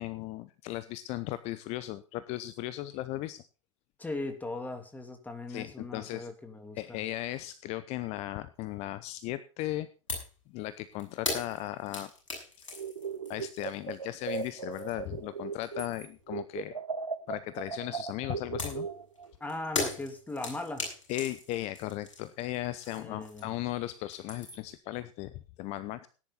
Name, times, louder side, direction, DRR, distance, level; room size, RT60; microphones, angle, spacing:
voice 1, 0.0-3.4 5.5-6.3 6.7-9.9 10.5-12.1 12.6-12.7 13.3-16.8 17.3-18.9 21.1-26.1, left 15 dB, 40° left, 15 dB, 0.8 m, -37 dB
voice 2, 4.0-7.0 19.4-20.9 22.9-23.5, left 2 dB, 10° left, 6 dB, 2.8 m, -38 dB
sound 1, 10.1-10.4 10.7-15.1 15.5-16.2 18.6-23.7 24.0-24.7, left 3 dB, 75° left, 7.1 m, -39 dB
sound 2, 12.7-16.0 16.3-19.3, right 6 dB, 80° right, 0.8 m, -38 dB
18.0 x 10.5 x 4.1 m, 0.36 s
figure-of-eight pair, 85°, 16 cm